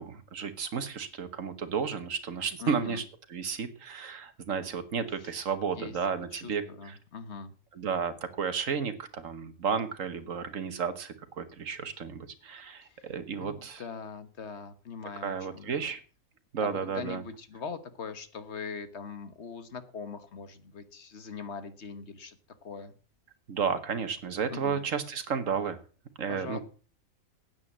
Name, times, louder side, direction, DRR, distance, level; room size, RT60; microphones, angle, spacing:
voice 1, 0.0-3.0 3.3-7.0 7.7-13.8 15.2-16.0 16.5-17.2 23.5-25.8 26.2-26.6, right 6 dB, 65° right, 10 dB, 1.6 m, -32 dB
voice 2, 2.6-3.0 5.2-5.3 5.8-6.0 6.3-7.5 12.8-13.1 13.4-15.9 16.6-22.4 22.6-22.9 24.5-24.8 26.3-26.6, left 5 dB, 50° left, 11 dB, 1.5 m, -41 dB
9.6 x 9.0 x 7.3 m, 0.39 s
omnidirectional pair, 1.5 m